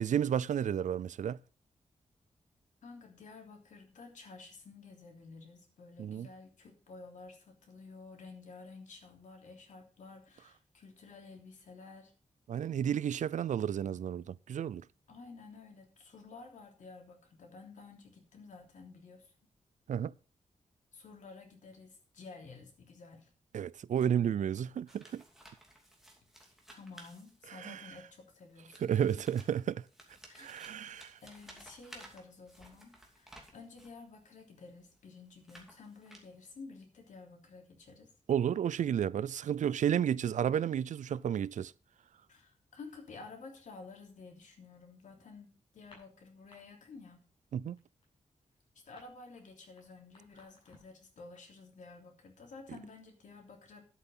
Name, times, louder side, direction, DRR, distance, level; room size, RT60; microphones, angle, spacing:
voice 1, 0.0-1.4 6.0-6.3 12.5-14.8 19.9-20.1 23.5-25.2 27.6-28.0 28.8-29.8 30.4-31.2 38.3-41.7 47.5-47.8, right 9 dB, 80° right, 0.5 m, -32 dB
voice 2, 2.8-12.1 15.1-19.3 20.9-23.3 26.7-29.0 30.3-30.5 31.2-38.1 42.3-47.3 48.8-53.9, left 4 dB, 85° left, 3.2 m, -52 dB
sound 1, 24.9-27.8 28.5-34.0 34.7-36.6, right 1 dB, 5° right, 2.6 m, -56 dB
sound 2, 45.7-46.6 46.9-47.2 47.5-51.0, left 2 dB, 40° left, 6.4 m, -62 dB
11.0 x 8.3 x 5.5 m
wide cardioid pair, 145°, 13 cm